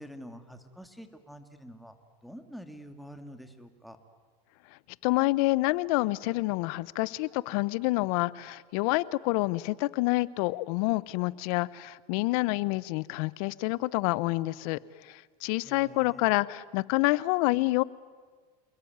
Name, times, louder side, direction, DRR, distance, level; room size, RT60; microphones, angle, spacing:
voice 1, 0.0-2.0 2.2-4.0 15.6-16.4, equal, ahead, 6 dB, 2.4 m, -47 dB
voice 2, 5.0-17.8, left 21 dB, 65° left, 20 dB, 1.0 m, -28 dB
28.5 x 21.5 x 9.5 m, 1.5 s
supercardioid pair, 115°, 20 cm